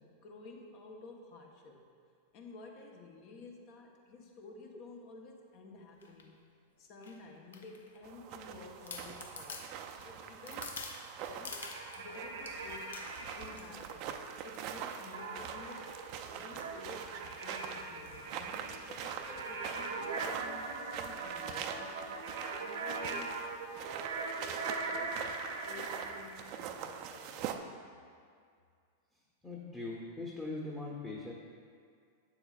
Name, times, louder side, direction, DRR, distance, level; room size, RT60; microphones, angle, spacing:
voice 1, 0.0-1.9 2.3-6.3 6.7-10.7 11.2-11.6 11.9-13.1 13.4-15.9 16.3-22.1 22.6-23.4 24.1-25.2 25.6-27.6, left 3 dB, 50° left, 1 dB, 1.0 m, -52 dB
sound 1, 6.0-6.3 7.0-8.1 8.5-8.6 8.9-12.1 12.5-13.9 14.3-14.6 14.9-15.2 15.7-17.5 18.0-18.2 18.4-18.5 18.7-19.0 19.4-19.6 19.9-20.0 21.0-21.3 21.8-21.9, left 4 dB, 80° left, 0.6 m, -49 dB
sound 2, 8.0-27.6, right 8 dB, 50° right, 0.4 m, -44 dB
sound 3, 11.4-13.5 15.1-26.2, right 3 dB, 75° right, 0.9 m, -41 dB
voice 2, 29.4-31.3, left 2 dB, 10° left, -5 dB, 1.0 m, -41 dB
8.1 x 7.0 x 2.4 m, 2.2 s
hypercardioid pair, 100°, 0 cm